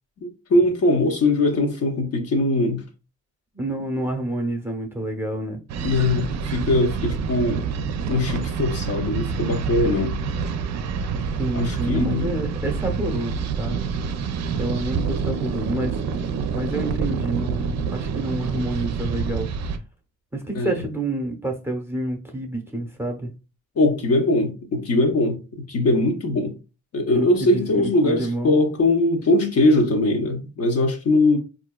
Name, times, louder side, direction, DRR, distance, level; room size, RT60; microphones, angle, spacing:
voice 1, 0.2-2.8 5.8-7.7 8.1-10.1 11.5-12.3 20.5-20.7 23.8-26.5 26.9-31.4, left 2 dB, 55° left, 0.9 m, -21 dB
voice 2, 3.5-5.6 10.0-10.1 11.4-13.8 14.6-16.0 16.5-19.5 20.3-23.3 27.1-28.5, right 1 dB, 10° right, 0.8 m, -28 dB
sound 1, 5.7-19.8, right 5 dB, 60° right, 0.5 m, -27 dB
3.9 x 2.6 x 2.2 m
cardioid pair, 90°, 30 cm